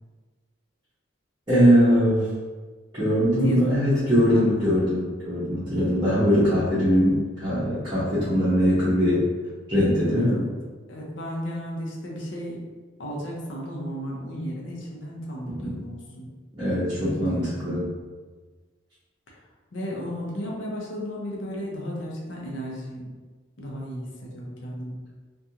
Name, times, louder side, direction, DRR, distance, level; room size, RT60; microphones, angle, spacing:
voice 1, 1.5-2.3 2.9-9.3 9.7-10.5 15.4-15.8 16.6-17.9, equal, 25° right, -15 dB, 0.8 m, -21 dB
voice 2, 3.4-4.6 5.7-6.0 10.1-10.5 10.9-12.6 13.0-16.3 16.6-17.7 19.7-23.1 23.6-25.0, equal, 65° left, -3 dB, 0.6 m, -34 dB
2.5 x 2.3 x 2.7 m, 1.4 s
head